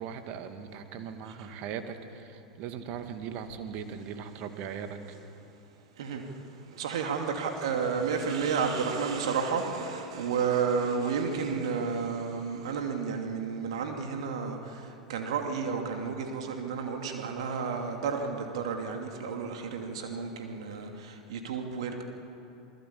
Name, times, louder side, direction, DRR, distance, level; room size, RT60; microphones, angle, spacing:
voice 1, 0.0-5.2, right 7 dB, 45° right, 7 dB, 2.2 m, -39 dB
voice 2, 6.0-22.0, right 5 dB, 60° right, 3 dB, 2.6 m, -32 dB
28.5 x 20.0 x 8.6 m, 2.8 s
figure-of-eight pair, 85°, 3 cm